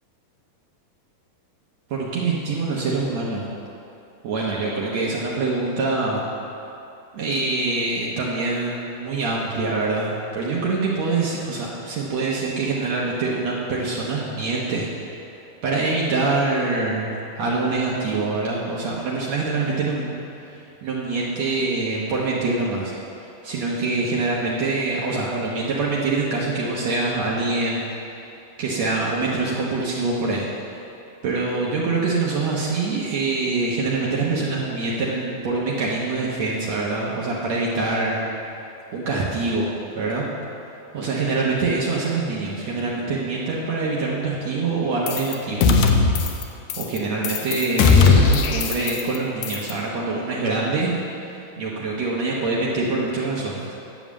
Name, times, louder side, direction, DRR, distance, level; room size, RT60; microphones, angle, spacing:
voice 1, 1.9-3.5 4.2-6.2 7.1-14.9 15.6-20.2 20.4-20.5 20.8-22.9 23.4-27.9 28.6-30.5 31.2-38.2 38.9-40.3 40.9-45.7 46.8-53.7, right 3 dB, 70° right, -4 dB, 1.6 m, -24 dB
sound 1, 45.1-45.3 45.6-46.4 46.7-47.0 47.2-49.2 49.4-49.7, left 4 dB, 80° left, 1.8 m, -18 dB
10.5 x 7.3 x 7.3 m, 2.8 s
omnidirectional pair, 4.7 m